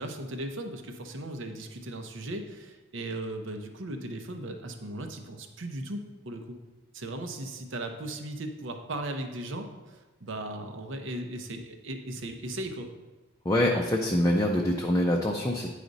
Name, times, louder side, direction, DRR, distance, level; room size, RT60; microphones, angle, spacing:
voice 1, 0.0-6.6 6.9-12.9, right 1 dB, 65° right, 5 dB, 0.8 m, -37 dB
voice 2, 13.4-15.7, left 1 dB, 15° left, -1 dB, 0.5 m, -25 dB
9.3 x 5.0 x 4.0 m, 1.2 s
head